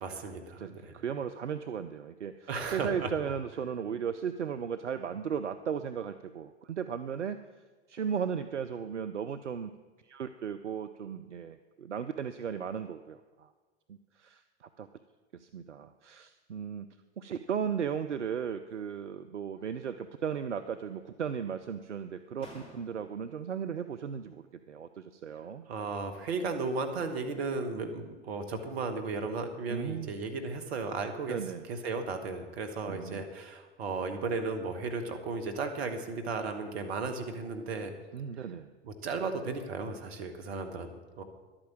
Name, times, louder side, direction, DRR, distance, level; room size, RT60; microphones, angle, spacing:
voice 1, 0.0-0.9 2.5-3.1 25.7-31.4 31.7-37.9 38.8-41.2, right 4 dB, 60° right, 7 dB, 1.6 m, -35 dB
voice 2, 0.6-7.4 7.9-9.7 10.0-13.5 13.9-14.9 15.3-16.9 17.2-25.7 29.7-30.2 31.3-31.7 32.8-33.3 38.1-38.7, right 7 dB, 85° right, 10 dB, 0.5 m, -36 dB
sound 1, 18.5-19.1 19.5-20.3 20.6-21.3 22.0-22.1 22.4-23.3, left 1 dB, 15° left, 3.4 m, -56 dB
11.5 x 8.8 x 7.4 m, 1.3 s
figure-of-eight pair, 80°, 35 cm